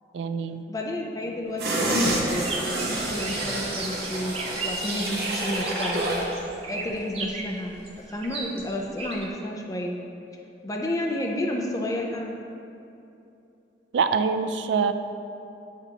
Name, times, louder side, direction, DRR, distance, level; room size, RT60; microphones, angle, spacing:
voice 1, 0.1-0.6 13.9-14.9, right 5 dB, 85° right, 10 dB, 0.3 m, -24 dB
voice 2, 0.7-4.4 4.6-6.1 6.7-10.0 10.6-12.3, left 1 dB, 20° left, -1 dB, 0.5 m, -31 dB
sound 1, 1.6-6.3 6.7-6.8, right 1 dB, 60° right, 1.0 m, -28 dB
sound 2, 2.3-9.3, right 3 dB, 35° right, 0.6 m, -36 dB
7.9 x 6.0 x 2.9 m, 2.7 s
head